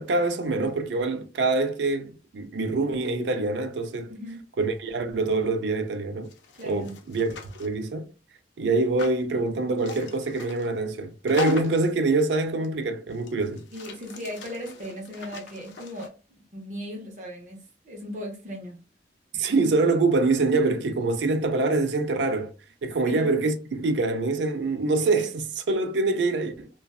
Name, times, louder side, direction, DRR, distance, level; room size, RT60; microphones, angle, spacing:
voice 1, 0.0-4.1 4.6-6.3 6.6-7.3 7.6-8.1 8.6-13.6 19.3-22.5 22.8-26.7, right 3 dB, 80° right, 0.4 m, -25 dB
voice 2, 4.1-4.4 6.5-6.9 13.7-16.1 16.5-17.6 17.8-18.8 23.1-23.2, equal, 45° right, 0.7 m, -37 dB
sound 1, 6.2-7.7 9.0-9.2 9.8-10.7 11.3-11.9 12.6-12.7 13.1-16.1, left 3 dB, 85° left, 0.5 m, -39 dB
2.5 x 2.2 x 2.2 m
head